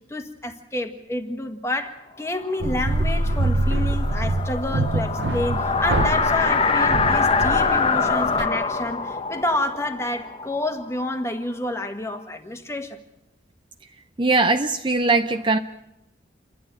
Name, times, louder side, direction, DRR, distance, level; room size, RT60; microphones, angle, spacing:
voice 1, 0.1-13.0, left 1 dB, 15° left, 6 dB, 1.6 m, -29 dB
sound 1, 2.5-11.2, left 4 dB, 30° left, 0.9 m, -24 dB
sound 2, 2.6-8.4, right 2 dB, 65° right, 0.8 m, -25 dB
voice 2, 14.2-15.6, right 3 dB, 25° right, 6 dB, 0.7 m, -20 dB
28.5 x 11.5 x 8.9 m, 0.88 s
head